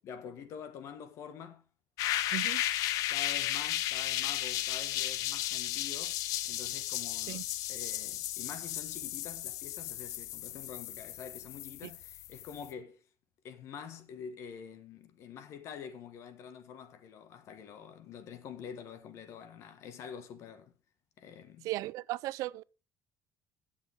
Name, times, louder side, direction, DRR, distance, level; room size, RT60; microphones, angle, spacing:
voice 1, 0.0-1.6 3.1-6.2 6.4-13.0 13.4-20.7 21.2-21.7, left 7 dB, 55° left, 1.6 m, -46 dB
sound 1, 2.0-12.7, left 13 dB, 85° left, 0.8 m, -34 dB
voice 2, 2.3-2.6 7.3-7.4 11.8-11.9 21.6-22.6, right 17 dB, 75° right, 0.5 m, -36 dB
16.5 x 7.2 x 3.6 m
cardioid pair, 170°, 6 cm